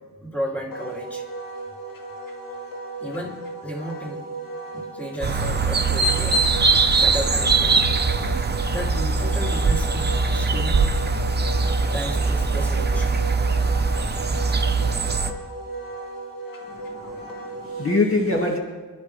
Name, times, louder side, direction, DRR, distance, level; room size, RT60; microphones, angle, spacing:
voice 1, 0.2-1.3 3.0-4.2 4.7-6.4 6.9-7.9 8.7-10.8 11.9-13.1 17.0-17.2, equal, 5° left, -2 dB, 2.7 m, -33 dB
Wind instrument woodwind instrument, 0.7-18.0, right 1 dB, 80° left, 2.2 m, -36 dB
sound 1, 5.2-15.3, right 4 dB, 30° right, 0.8 m, -21 dB
voice 2, 16.7-18.6, left 2 dB, 40° left, -1 dB, 2.0 m, -24 dB
26.5 x 12.0 x 3.3 m, 1.3 s
wide cardioid pair, 150°, 34 cm